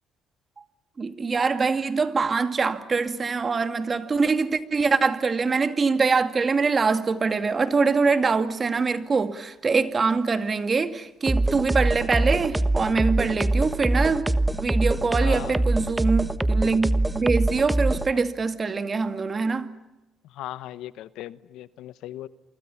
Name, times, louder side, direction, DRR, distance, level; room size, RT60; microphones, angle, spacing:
voice 1, 1.0-19.7, right 4 dB, 35° right, 2.2 m, -24 dB
sound 1, 11.3-18.1, right 2 dB, 10° right, 1.2 m, -23 dB
voice 2, 15.1-15.6 18.2-18.4 20.2-22.3, left 14 dB, 80° left, 1.0 m, -38 dB
29.0 x 25.0 x 7.1 m
cardioid pair, 90°, 0 cm